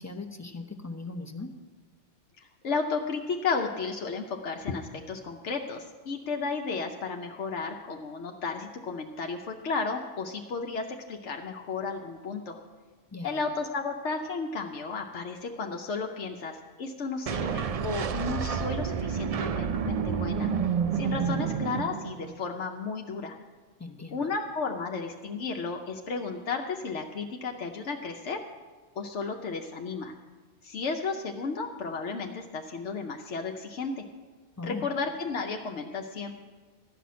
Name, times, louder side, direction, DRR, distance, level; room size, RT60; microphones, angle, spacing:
voice 1, 0.0-1.5 13.1-13.4 23.8-24.2 34.6-34.8, left 3 dB, 15° left, 5 dB, 0.7 m, -39 dB
voice 2, 2.4-12.6 13.2-20.5 20.9-23.4 24.1-28.4 29.0-30.1 30.6-34.0 34.6-36.3, left 4 dB, 75° left, 3 dB, 1.1 m, -33 dB
sound 1, 17.3-22.4, right 6 dB, 65° right, 0.3 m, -29 dB
13.5 x 5.9 x 9.4 m, 1.4 s
omnidirectional pair, 1.2 m